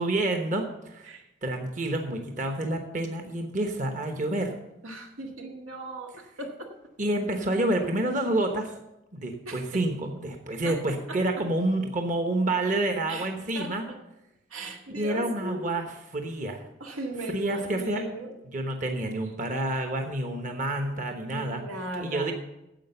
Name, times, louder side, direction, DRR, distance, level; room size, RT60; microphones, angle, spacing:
voice 1, 0.0-1.1 1.4-4.5 7.0-8.7 9.1-13.8 14.9-16.6 17.3-18.0 18.4-21.6 22.0-22.3, right 1 dB, 40° right, 4 dB, 1.0 m, -28 dB
voice 2, 4.8-6.7 9.5-9.6 10.6-10.8 11.1-11.2 13.1-13.3 13.5-14.0 14.5-15.9 16.8-18.3 21.3-22.3, right 1 dB, 90° right, 1 dB, 1.9 m, -37 dB
10.0 x 7.7 x 6.8 m, 0.89 s
head